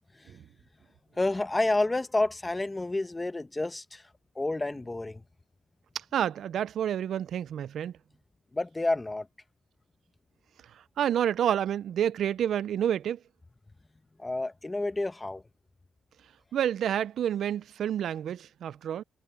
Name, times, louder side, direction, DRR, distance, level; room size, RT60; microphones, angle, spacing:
voice 1, 1.1-4.0 4.3-5.2 8.5-9.3 14.2-15.4, left 2 dB, 15° left, 1.2 m, -29 dB
voice 2, 5.9-7.9 11.0-13.2 16.5-19.0, right 10 dB, 65° right, 0.4 m, -29 dB
cardioid pair, 90°, 0 cm